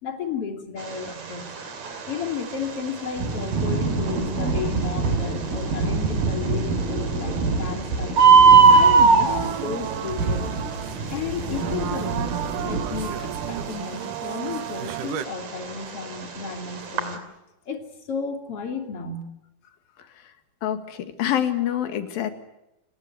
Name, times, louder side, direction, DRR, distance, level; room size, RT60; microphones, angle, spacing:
voice 1, 0.0-1.5 2.1-8.2 8.7-10.6 11.1-17.2 17.7-19.2, left 6 dB, 40° left, 5 dB, 3.5 m, -33 dB
Bird, 0.8-17.2, right 5 dB, 50° right, 4.0 m, -21 dB
Thunder / Rain, 3.2-13.7, right 3 dB, 85° right, 6.4 m, -28 dB
sound 1, 9.2-15.2, right 11 dB, 70° right, 2.5 m, -33 dB
voice 2, 20.6-22.3, left 10 dB, 80° left, 9 dB, 3.7 m, -26 dB
30.0 x 17.0 x 9.4 m, 0.91 s
omnidirectional pair, 4.2 m